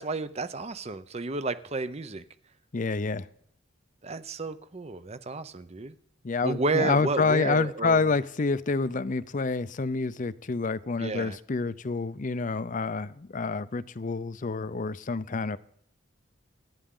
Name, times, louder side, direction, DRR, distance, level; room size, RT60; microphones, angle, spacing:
voice 1, 0.0-2.2 4.0-5.9 6.4-8.2 11.0-11.4, right 3 dB, 30° right, 0.6 m, -31 dB
voice 2, 2.7-3.3 6.2-15.6, left 4 dB, 40° left, 0.5 m, -28 dB
25.5 x 11.0 x 3.8 m
head